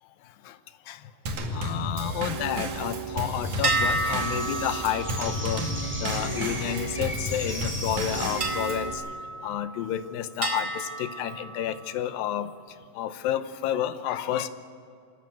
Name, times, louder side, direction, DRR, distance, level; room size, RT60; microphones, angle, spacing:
Drum kit / Snare drum / Bass drum, 1.3-8.9, right 1 dB, 60° right, 3.6 m, -32 dB
voice 1, 1.5-5.7 6.0-9.0 9.4-12.5 13.0-14.5, left 11 dB, 85° left, 12 dB, 2.7 m, -30 dB
sound 1, 3.4-8.5, equal, 5° right, 5.6 m, -37 dB
sound 2, 3.6-7.3 8.4-9.9 10.4-12.1, right 2 dB, 25° right, 2.2 m, -32 dB
26.5 x 14.0 x 9.2 m, 2.3 s
omnidirectional pair, 4.1 m